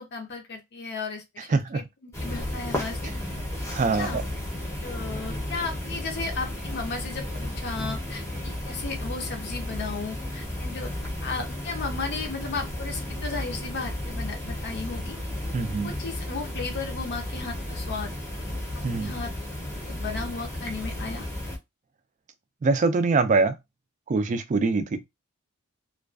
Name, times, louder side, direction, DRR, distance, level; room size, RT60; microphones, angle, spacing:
voice 1, 0.0-3.1 3.9-4.2 4.8-10.9 11.2-15.2 15.8-18.1 19.0-19.3 19.9-21.3, left 4 dB, 50° left, 0.5 m, -35 dB
voice 2, 1.5-1.8 3.0-3.1 3.8-4.2 15.5-15.9 18.8-19.1 22.6-23.6 24.1-25.0, right 3 dB, 35° right, 0.3 m, -23 dB
sound 1, 2.1-21.6, left 1 dB, 15° left, 0.7 m, -33 dB
2.4 x 2.2 x 2.3 m
head